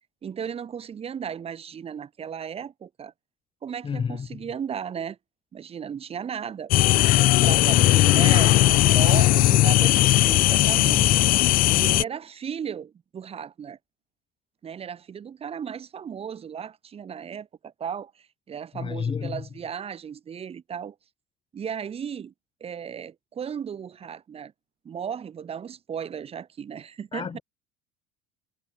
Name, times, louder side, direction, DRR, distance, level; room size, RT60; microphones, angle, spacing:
voice 1, 0.2-3.1 3.6-5.2 5.5-6.7 7.4-11.0 11.7-13.8 14.6-20.9 21.5-22.3 22.6-24.5 24.8-27.4, right 7 dB, 30° right, 3.3 m, -35 dB
voice 2, 3.8-4.4 7.4-7.9 10.6-11.4 18.7-19.4 27.1-27.4, left 6 dB, 30° left, 6.7 m, -31 dB
sound 1, 6.7-12.0, left 17 dB, 50° left, 0.5 m, -18 dB
supercardioid pair, 115°, 19 cm